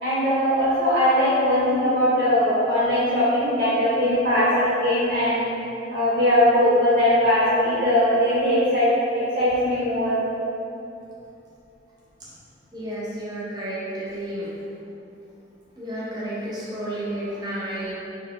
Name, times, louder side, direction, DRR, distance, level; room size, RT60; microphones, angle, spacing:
voice 1, 0.0-5.5 5.9-10.2, equal, 60° right, -10 dB, 0.8 m, -20 dB
voice 2, 12.7-14.5 15.8-17.9, right 1 dB, 20° right, -7 dB, 0.6 m, -31 dB
2.7 x 2.3 x 3.6 m, 2.8 s
head